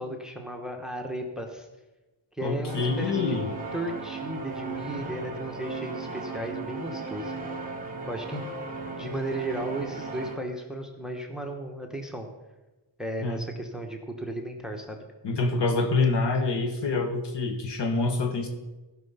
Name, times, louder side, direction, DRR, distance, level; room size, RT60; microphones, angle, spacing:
voice 1, 0.0-1.7 2.3-3.4 3.7-7.4 8.1-8.4 9.0-12.3 13.0-15.0, right 1 dB, ahead, 4 dB, 1.1 m, -35 dB
voice 2, 2.4-3.5 13.2-13.4 15.2-18.5, left 3 dB, 60° left, 4 dB, 1.4 m, -26 dB
sound 1, 2.7-10.4, right 3 dB, 20° right, 1.7 m, -36 dB
15.0 x 5.9 x 5.6 m, 1.1 s
wide cardioid pair, 130°, 46 cm